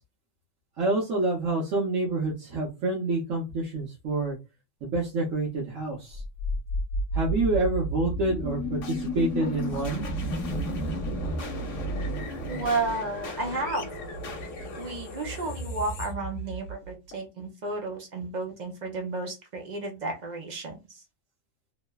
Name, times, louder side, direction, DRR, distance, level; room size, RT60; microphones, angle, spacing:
voice 1, 0.8-4.4 4.8-6.2 7.1-10.0, right 2 dB, 75° right, -3 dB, 1.1 m, -27 dB
sound 1, 6.1-17.2, equal, 75° left, 1.0 m, -32 dB
voice 2, 12.5-13.9 14.8-21.0, right 3 dB, 45° right, 2 dB, 0.6 m, -32 dB
3.0 x 2.1 x 2.2 m, 0.26 s
omnidirectional pair, 1.3 m